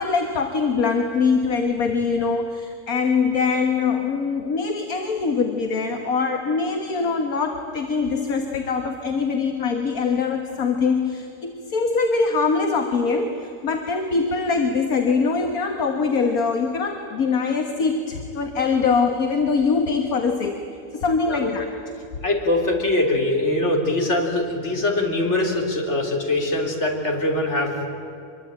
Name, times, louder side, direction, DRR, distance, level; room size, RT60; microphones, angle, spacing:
voice 1, 0.0-20.7 20.9-21.7, left 4 dB, 65° left, 4 dB, 1.9 m, -23 dB
voice 2, 21.3-21.7 22.2-27.8, left 2 dB, 45° left, 1 dB, 3.9 m, -22 dB
25.0 x 23.0 x 9.0 m, 2.7 s
omnidirectional pair, 1.7 m